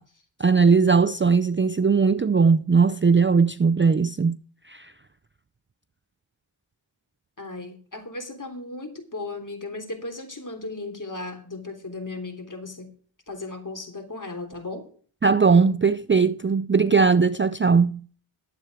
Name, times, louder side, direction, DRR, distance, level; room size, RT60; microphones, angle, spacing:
voice 1, 0.4-4.4 4.7-4.9 15.2-18.0, right 5 dB, 25° right, 0.5 m, -19 dB
voice 2, 7.4-12.9 13.3-14.9, left 2 dB, 40° left, 3.4 m, -36 dB
11.5 x 8.2 x 4.8 m
cardioid pair, 55°, 48 cm